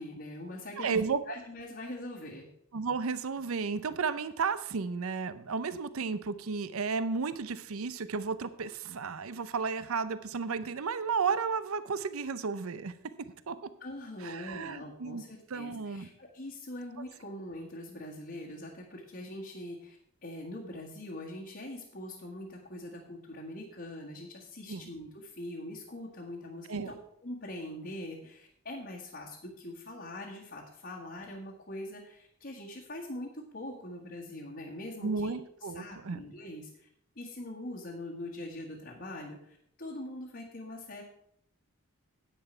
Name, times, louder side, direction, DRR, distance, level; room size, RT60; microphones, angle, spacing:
voice 1, 0.0-1.0 1.3-2.5 13.8-26.9 27.2-35.4 35.7-36.9 37.1-41.0, left 1 dB, 50° left, -3 dB, 1.5 m, -43 dB
voice 2, 0.8-1.2 2.7-12.9 13.5-13.6 14.2-15.2 15.5-16.1 24.7-24.9 26.7-26.9 35.0-36.2, right 5 dB, 75° right, 14 dB, 0.6 m, -33 dB
10.0 x 9.0 x 4.4 m, 0.70 s
head